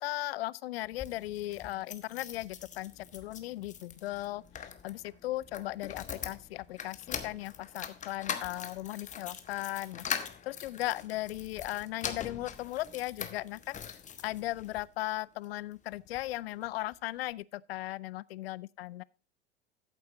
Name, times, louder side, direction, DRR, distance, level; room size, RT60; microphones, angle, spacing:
voice 1, 0.0-10.1 10.4-13.8 14.2-19.0, left 16 dB, 60° left, 0.5 m, -37 dB
sound 1, 0.8-14.8 15.4-16.3 16.6-16.7 16.9-17.0, left 7 dB, 20° left, 1.2 m, -42 dB
13.5 x 7.8 x 3.0 m
figure-of-eight pair, 85°, 33 cm